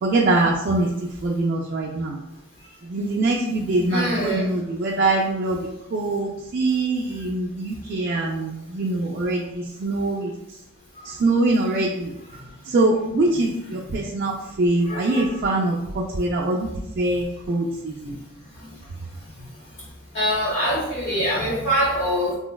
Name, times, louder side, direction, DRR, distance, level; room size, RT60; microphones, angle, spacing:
voice 1, 0.0-2.2 2.8-10.3 11.0-12.1 12.6-16.7 17.0-18.2, right 2 dB, 50° right, -3 dB, 0.3 m, -23 dB
voice 2, 3.9-4.4 11.0-11.1 14.9-15.2 20.1-22.3, equal, 60° left, -7 dB, 0.9 m, -24 dB
3.8 x 2.1 x 2.2 m, 0.87 s
head